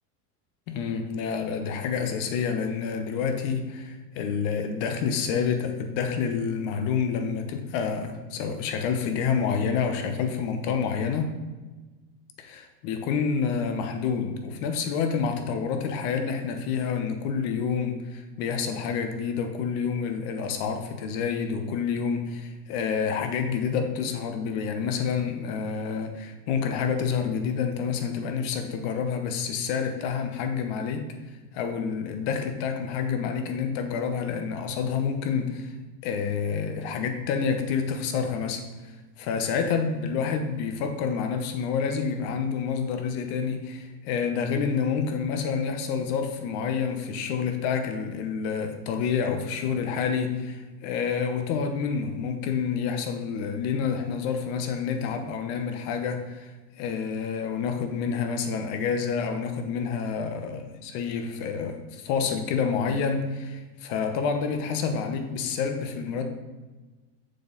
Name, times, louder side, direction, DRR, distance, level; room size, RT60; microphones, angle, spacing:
voice 1, 0.7-11.3 12.4-31.1 31.5-35.7 36.0-56.5 56.8-66.2, left 6 dB, 55° left, 6 dB, 1.0 m, -28 dB
6.8 x 3.8 x 3.9 m, 1.2 s
supercardioid pair, 125°, 46 cm